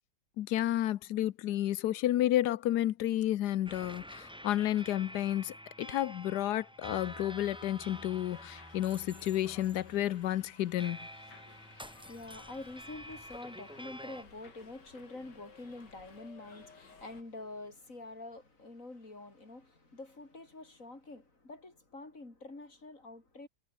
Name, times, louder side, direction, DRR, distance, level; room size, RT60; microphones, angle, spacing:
voice 1, 0.4-11.0, left 13 dB, 75° left, 1.3 m, -31 dB
sound 1, 3.7-14.2, equal, 5° right, 5.9 m, -49 dB
Subway metro underground, 6.9-17.2, left 4 dB, 90° left, 3.7 m, -57 dB
voice 2, 11.4-23.5, left 2 dB, 50° left, 5.3 m, -47 dB
omnidirectional pair, 1.8 m